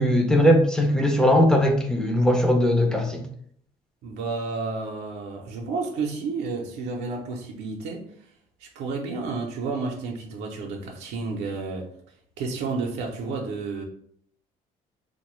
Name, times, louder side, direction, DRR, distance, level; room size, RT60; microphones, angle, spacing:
voice 1, 0.0-3.2, equal, 5° left, 2 dB, 0.5 m, -19 dB
voice 2, 4.0-8.0 8.6-11.9 12.4-13.8, right 4 dB, 85° right, 0 dB, 0.6 m, -31 dB
2.9 x 2.1 x 3.0 m, 0.64 s
cardioid pair, 110°, 17 cm